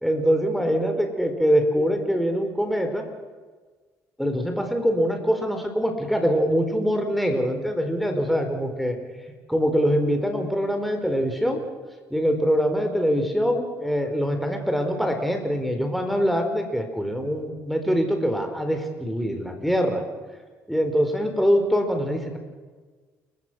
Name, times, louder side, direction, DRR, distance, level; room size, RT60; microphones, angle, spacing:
voice 1, 0.0-3.0 4.2-9.0 9.5-11.6 12.1-20.0 20.7-22.4, equal, ahead, 4 dB, 4.6 m, -23 dB
29.0 x 15.0 x 6.3 m, 1.4 s
hypercardioid pair, 55°, 7 cm